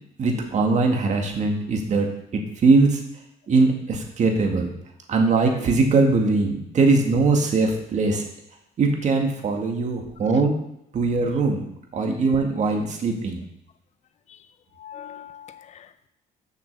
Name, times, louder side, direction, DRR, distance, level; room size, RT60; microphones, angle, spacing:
voice 1, 0.2-3.0 3.5-4.7 5.1-8.2 8.8-10.6 10.9-11.6 11.9-13.4, right 3 dB, 45° right, 2 dB, 1.9 m, -21 dB
voice 2, 14.8-16.1, left 9 dB, 40° left, 11 dB, 0.6 m, -43 dB
7.3 x 5.9 x 6.8 m, 0.79 s
cardioid pair, 110°, 17 cm